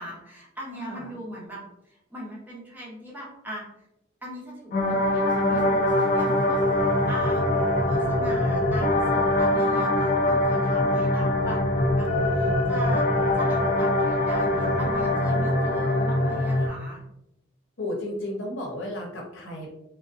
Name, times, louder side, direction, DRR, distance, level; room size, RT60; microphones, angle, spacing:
voice 1, 0.0-3.6 4.2-7.4 7.7-13.0 13.3-17.0, equal, 10° right, -4 dB, 0.6 m, -40 dB
voice 2, 0.7-1.1 14.6-15.4 17.8-19.7, left 1 dB, 70° left, -1 dB, 0.7 m, -34 dB
sound 1, 4.7-16.7, left 1 dB, 40° left, 0.4 m, -23 dB
2.4 x 2.2 x 2.4 m, 0.83 s
head